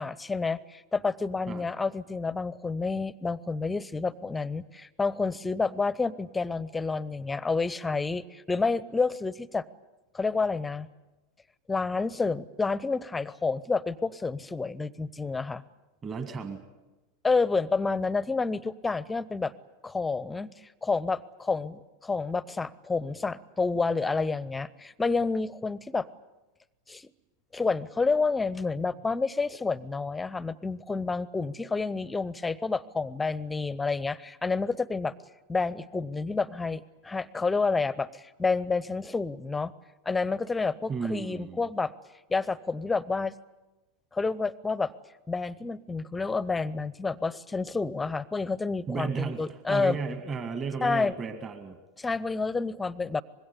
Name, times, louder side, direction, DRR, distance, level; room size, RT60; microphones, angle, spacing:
voice 1, 0.0-9.6 10.1-10.9 11.7-15.6 17.2-19.5 19.8-20.5 20.8-26.1 26.9-27.1 27.5-35.1 35.5-39.7 40.1-41.9 42.3-43.3 44.1-44.9 45.3-50.0 50.8-51.1 52.0-53.2, left 4 dB, 10° left, 20 dB, 0.7 m, -29 dB
voice 2, 16.0-16.6 40.9-41.7 48.9-51.8, right 5 dB, 30° right, 8 dB, 1.9 m, -34 dB
25.5 x 21.5 x 8.3 m, 1.1 s
figure-of-eight pair, 85°, 0 cm